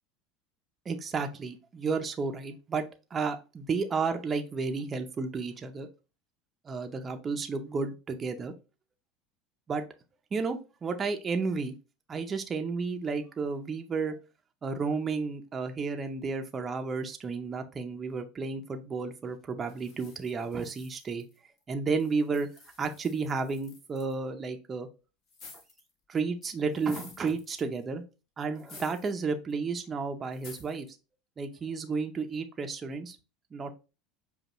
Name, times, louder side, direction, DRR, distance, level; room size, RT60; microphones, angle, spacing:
voice 1, 0.9-2.9 3.1-5.9 6.6-8.5 9.7-9.8 10.3-11.8 12.1-14.2 14.6-21.2 21.7-22.5 22.8-24.9 26.1-28.0 28.4-30.9 31.4-33.2 33.5-33.7, right 4 dB, 30° right, 6 dB, 0.5 m, -32 dB
sound 1, 19.7-21.6 22.0-24.1 25.3-25.9 26.4-27.8 28.5-29.2 29.5-29.6 30.3-30.8, left 4 dB, 50° left, 1.3 m, -52 dB
5.2 x 2.3 x 2.9 m, 0.31 s
supercardioid pair, 100°, 0 cm